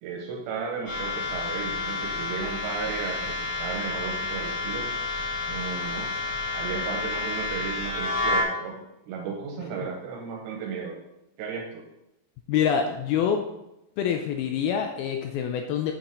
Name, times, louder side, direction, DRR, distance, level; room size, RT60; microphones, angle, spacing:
voice 1, 0.0-4.9 5.5-6.1 6.5-11.0 11.4-11.8, right 5 dB, 90° right, -1 dB, 3.5 m, -34 dB
sound 1, 0.9-8.4, left 3 dB, 25° left, 2.7 m, -30 dB
voice 2, 12.5-13.4 14.0-15.9, left 8 dB, 80° left, 4 dB, 2.2 m, -26 dB
8.0 x 7.1 x 3.8 m, 0.88 s
omnidirectional pair, 4.9 m